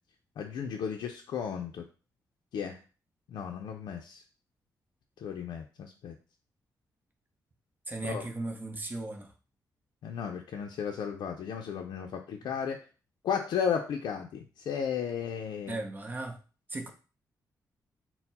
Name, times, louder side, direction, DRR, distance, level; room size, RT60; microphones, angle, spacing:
voice 1, 0.4-1.8 2.5-2.8 3.3-4.2 5.2-6.1 8.1-8.2 10.0-12.8 13.2-15.8, left 7 dB, 80° left, 0.4 m, -34 dB
voice 2, 7.9-9.3 15.7-16.4 16.7-16.9, right 2 dB, 25° right, 0.7 m, -36 dB
4.3 x 2.0 x 4.0 m
cardioid pair, 115°, 7 cm